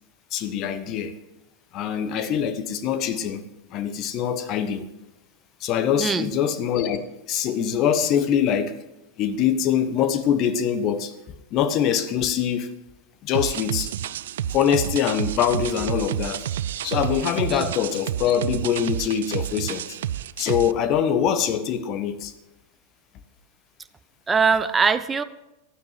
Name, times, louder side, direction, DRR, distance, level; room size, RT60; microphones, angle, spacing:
voice 1, 0.3-1.2 1.7-3.4 3.7-4.9 5.6-7.0 7.3-8.8 9.2-11.1 11.5-12.7 13.2-13.9 14.5-16.4 16.8-20.0 20.4-22.3, left 8 dB, 35° left, 1.3 m, -23 dB
voice 2, 6.0-6.3 17.5-17.7 24.3-25.2, right 5 dB, 15° right, 0.7 m, -21 dB
sound 1, 13.3-20.7, right 11 dB, 60° right, 0.3 m, -30 dB
13.0 x 9.3 x 7.5 m
figure-of-eight pair, 90°, 0 cm